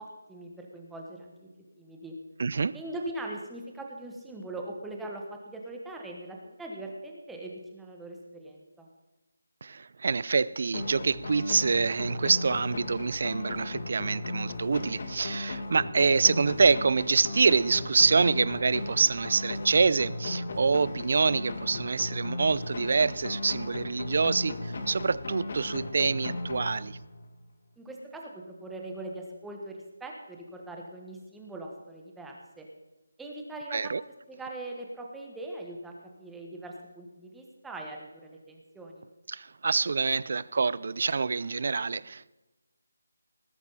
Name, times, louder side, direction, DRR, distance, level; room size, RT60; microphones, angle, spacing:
voice 1, 0.0-1.5 1.8-2.1 2.7-8.9 27.8-32.7 33.2-33.9 34.3-39.1, right 2 dB, 5° right, 0 dB, 1.4 m, -41 dB
voice 2, 2.4-2.8 9.6-27.0 33.7-34.0 39.3-42.3, right 4 dB, 50° right, 21 dB, 0.4 m, -26 dB
sound 1, 10.7-27.3, left 2 dB, 45° left, 1.7 m, -36 dB
19.0 x 11.0 x 4.1 m, 1.1 s
figure-of-eight pair, 170°, 0 cm